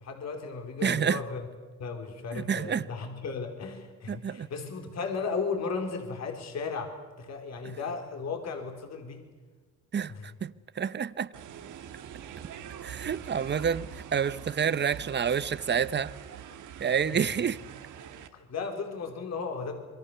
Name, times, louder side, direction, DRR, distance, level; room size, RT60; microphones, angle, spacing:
voice 1, 0.0-1.4 1.8-6.9 7.2-9.2 10.1-10.3 17.1-17.3 18.3-19.8, left 4 dB, 60° left, 4.1 m, -35 dB
voice 2, 0.8-1.2 2.3-2.9 4.1-4.5 9.9-11.3 12.8-16.1 16.8-17.6, right 7 dB, 35° right, 0.9 m, -29 dB
sound 1, 11.3-18.3, right 9 dB, 80° right, 2.0 m, -44 dB
27.5 x 22.5 x 6.9 m
cardioid pair, 90°, 30 cm